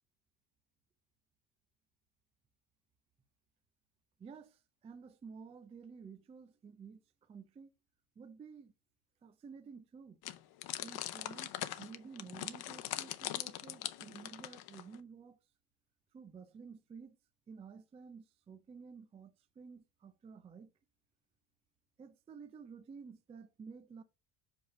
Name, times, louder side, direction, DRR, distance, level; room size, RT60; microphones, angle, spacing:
voice 1, 4.2-7.7 8.2-8.7 9.2-10.2 10.8-15.4 16.1-17.2 17.5-20.7 22.0-24.0, right 5 dB, 15° right, 0.4 m, -52 dB
sound 1, 10.2-15.0, left 14 dB, 55° left, 0.8 m, -42 dB
5.5 x 5.3 x 5.7 m
cardioid pair, 155°, 46 cm